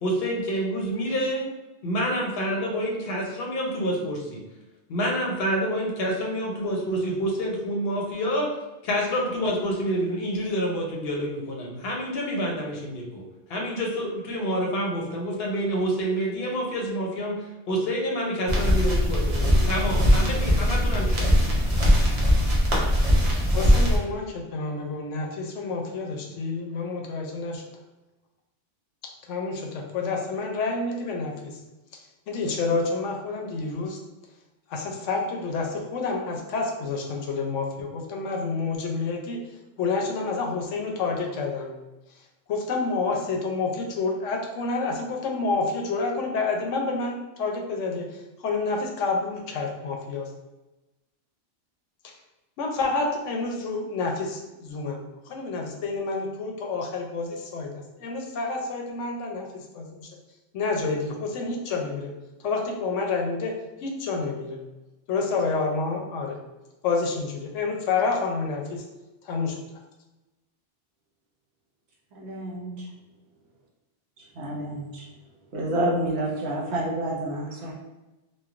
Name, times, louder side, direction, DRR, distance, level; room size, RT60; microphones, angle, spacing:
voice 1, 0.0-1.4 1.8-4.4 4.9-8.5 8.8-13.2 13.5-17.4 17.7-21.3, equal, 60° left, -1 dB, 0.8 m, -27 dB
sound 1, 18.5-24.0, equal, 40° right, 0.6 m, -20 dB
voice 2, 23.5-27.6 29.3-31.6 32.3-34.0 34.7-39.4 39.8-41.7 42.5-50.3 52.6-60.1 60.5-62.1 62.4-63.5 63.8-64.6 65.1-66.4 66.8-68.8 69.2-69.6, left 4 dB, 90° left, 1 dB, 0.9 m, -29 dB
voice 3, 72.1-72.9 74.3-75.0 75.5-77.7, right 1 dB, 65° right, -3 dB, 0.9 m, -29 dB
3.0 x 2.2 x 2.4 m, 1.0 s
omnidirectional pair, 1.2 m